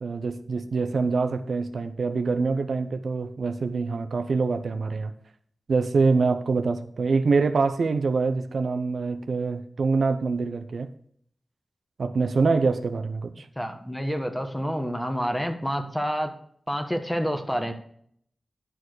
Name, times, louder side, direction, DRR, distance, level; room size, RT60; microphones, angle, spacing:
voice 1, 0.0-5.1 5.7-10.9 12.0-13.5, right 4 dB, 75° right, 8 dB, 0.7 m, -25 dB
voice 2, 13.6-16.3 16.7-17.7, equal, 5° left, 6 dB, 1.5 m, -28 dB
11.5 x 4.7 x 6.3 m, 0.64 s
cardioid pair, 60°, 0 cm